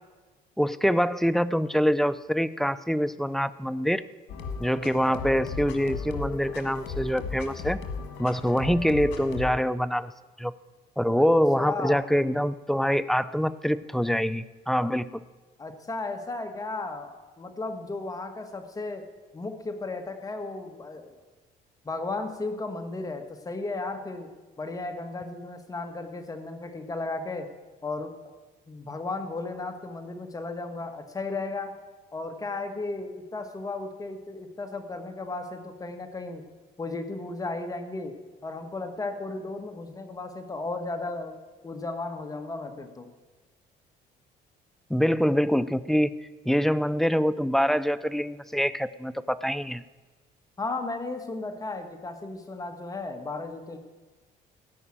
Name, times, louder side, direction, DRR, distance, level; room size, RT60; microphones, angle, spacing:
voice 1, 0.6-4.0 4.6-7.8 8.2-10.1 10.4-10.5 11.0-15.2 44.9-46.1 46.5-49.8, equal, ahead, 14 dB, 0.4 m, -25 dB
sound 1, 4.3-9.6, left 5 dB, 85° left, 1.7 m, -36 dB
voice 2, 11.6-12.0 15.6-19.1 19.3-21.2 21.8-24.3 24.6-27.5 27.8-28.1 28.7-31.8 32.1-36.5 36.8-38.2 38.4-41.4 41.6-43.1 50.6-53.8, left 3 dB, 20° left, 6 dB, 1.6 m, -35 dB
15.5 x 5.5 x 8.8 m, 1.3 s
cardioid pair, 110°, 17 cm